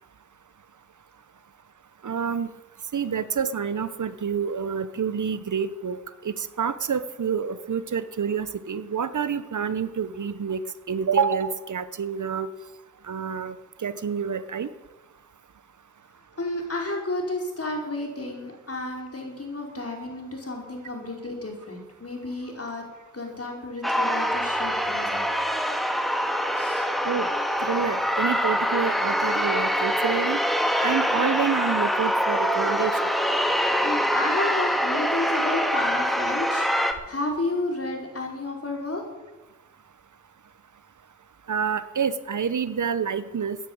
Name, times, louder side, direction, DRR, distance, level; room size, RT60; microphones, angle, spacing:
voice 1, 2.0-2.5 2.9-6.0 6.2-10.6 10.9-12.5 13.1-13.5 13.8-14.7 27.0-27.3 27.6-30.4 30.8-33.0 41.5-43.6, right 7 dB, 70° right, 14 dB, 0.9 m, -28 dB
voice 2, 16.4-22.8 23.1-25.2 26.5-26.9 33.8-36.7 37.1-39.0, left 2 dB, 50° left, 1 dB, 4.8 m, -32 dB
sound 1, 23.8-36.9, equal, ahead, 1.9 m, -24 dB
13.5 x 10.0 x 8.7 m, 1.1 s
cardioid pair, 45°, 31 cm